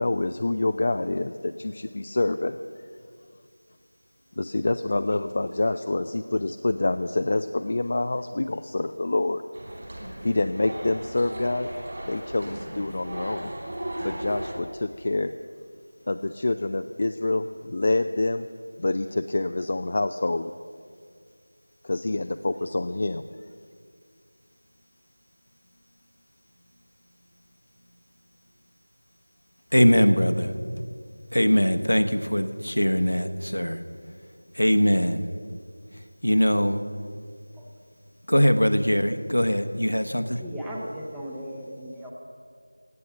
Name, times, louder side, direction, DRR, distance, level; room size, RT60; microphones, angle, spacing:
voice 1, 0.0-2.6 4.4-9.4 10.2-11.7 12.0-13.5 14.0-15.3 16.1-18.5 18.8-20.5 21.8-23.2, left 2 dB, 30° left, 8 dB, 0.3 m, -26 dB
sound 1, 9.5-14.5, right 1 dB, 35° right, 2.9 m, -36 dB
voice 2, 29.7-30.9 31.3-33.8 34.5-35.2 36.2-36.8 38.3-40.4, equal, 85° left, 8 dB, 1.1 m, -22 dB
voice 3, 40.4-42.1, equal, ahead, -6 dB, 0.8 m, -36 dB
17.0 x 9.7 x 6.9 m, 2.1 s
figure-of-eight pair, 170°, 0 cm